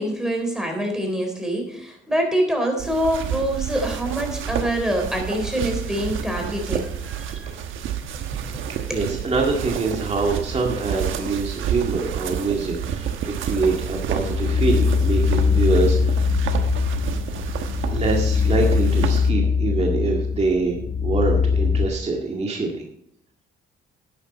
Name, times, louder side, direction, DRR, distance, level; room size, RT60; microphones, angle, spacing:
voice 1, 0.0-7.5 8.3-9.1, equal, 5° right, 3 dB, 4.0 m, -25 dB
sound 1, 2.8-19.3, right 8 dB, 80° right, 1.2 m, -29 dB
voice 2, 8.9-16.3 17.9-22.8, right 3 dB, 35° right, -1 dB, 1.9 m, -25 dB
sound 2, 13.5-21.9, left 6 dB, 40° left, 3.6 m, -22 dB
12.0 x 9.6 x 4.1 m, 0.72 s
cardioid pair, 90°, 20 cm